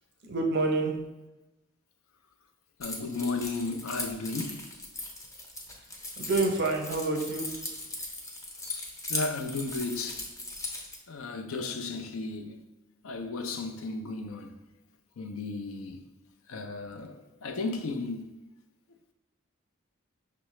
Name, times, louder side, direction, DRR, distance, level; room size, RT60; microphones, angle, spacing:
voice 1, 0.2-1.0 6.2-7.5, right 3 dB, 55° right, 0.6 m, -27 dB
voice 2, 2.8-4.7 9.1-10.3 11.1-12.6 13.0-14.6 15.2-16.0 16.5-18.3, left 3 dB, 85° left, 0.4 m, -34 dB
Keys jangling, 2.8-11.0, left 2 dB, 15° left, 0.5 m, -38 dB
5.4 x 2.0 x 3.0 m
head